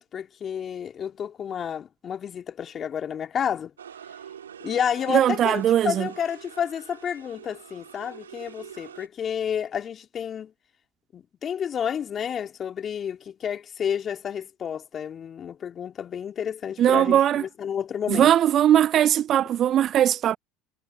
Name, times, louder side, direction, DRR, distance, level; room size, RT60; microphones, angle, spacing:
voice 1, 0.0-3.7 4.6-10.5 11.1-18.3, left 8 dB, 40° left, 2.7 m, -30 dB
sound 1, 3.8-9.1, right 8 dB, 90° right, 3.1 m, -44 dB
voice 2, 5.1-6.1 16.8-17.4 18.1-20.4, right 11 dB, 45° right, 0.3 m, -20 dB
hypercardioid pair, 75°, 0 cm